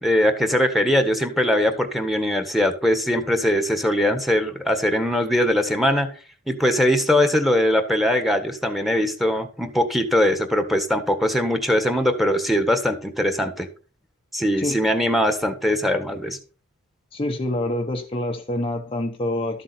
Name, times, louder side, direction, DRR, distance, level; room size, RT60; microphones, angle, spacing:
voice 1, 0.0-6.1 6.5-13.7 14.3-16.4, left 1 dB, ahead, 1.6 m, -21 dB
voice 2, 17.1-19.6, left 1 dB, 25° left, 0.9 m, -26 dB
13.0 x 7.5 x 4.2 m
head